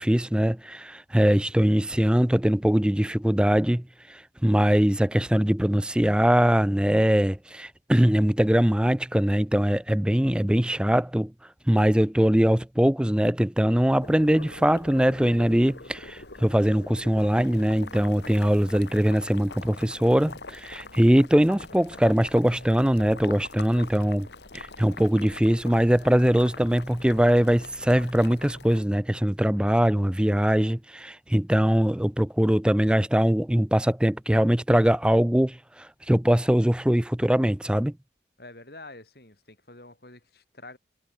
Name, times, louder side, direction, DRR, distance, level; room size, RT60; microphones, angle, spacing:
voice 1, 0.0-11.3 11.7-24.3 24.5-37.9, equal, 5° right, 0.4 m, -22 dB
Boiling, 14.0-28.8, left 3 dB, 75° left, 3.7 m, -44 dB
voice 2, 38.4-40.8, left 2 dB, 60° left, 4.9 m, -47 dB
head